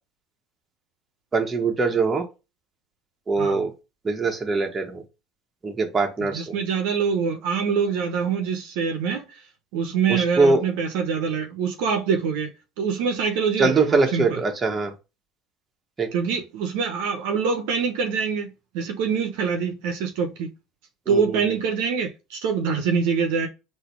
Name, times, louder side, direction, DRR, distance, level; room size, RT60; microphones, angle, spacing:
voice 1, 1.3-2.2 3.3-3.7 4.0-5.0 5.6-6.6 10.1-10.6 13.6-14.9 16.0-16.1 21.1-21.4, right 3 dB, 25° right, 1.2 m, -22 dB
voice 2, 6.2-9.3 9.7-12.5 12.8-14.4 16.1-20.5 21.1-23.5, right 6 dB, 75° right, 0.8 m, -25 dB
3.9 x 2.7 x 4.4 m
supercardioid pair, 85°, 0 cm